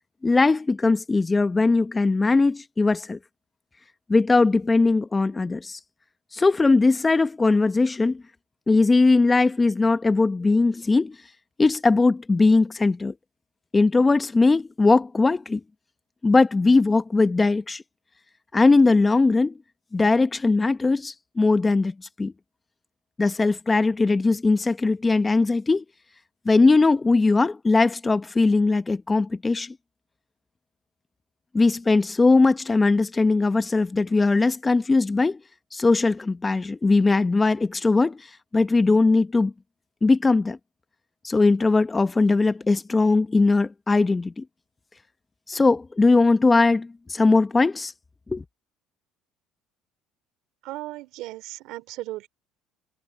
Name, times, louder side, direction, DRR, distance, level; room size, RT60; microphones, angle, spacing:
voice 1, 0.2-3.2 4.1-5.8 6.3-8.2 8.7-11.1 11.6-13.1 13.7-15.6 16.2-17.8 18.5-19.5 19.9-22.3 23.2-25.8 26.4-29.8 31.5-35.4 35.7-38.3 38.5-39.5 40.0-40.6 41.2-44.4 45.5-47.9 48.3-48.4, left 3 dB, 20° left, 1.1 m, -20 dB
voice 2, 50.6-52.3, right 17 dB, 70° right, 3.2 m, -36 dB
supercardioid pair, 75°, 0 cm